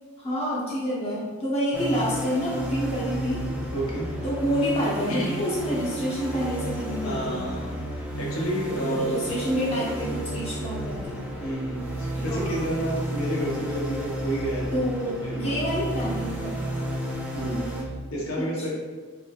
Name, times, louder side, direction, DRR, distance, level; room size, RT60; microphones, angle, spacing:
voice 1, 0.2-3.5 4.2-7.5 8.8-11.3 12.1-12.7 14.7-16.6 18.4-18.7, equal, 25° left, -7 dB, 0.8 m, -28 dB
sound 1, 1.7-17.8, right 1 dB, 5° right, 0.3 m, -32 dB
voice 2, 3.7-4.1 5.1-5.3 7.0-7.8 8.2-9.2 9.5-9.6 11.4-14.9 15.2-15.6 17.3-17.6 18.1-18.7, right 1 dB, 65° left, -4 dB, 0.8 m, -30 dB
3.3 x 3.0 x 2.3 m, 1.4 s
head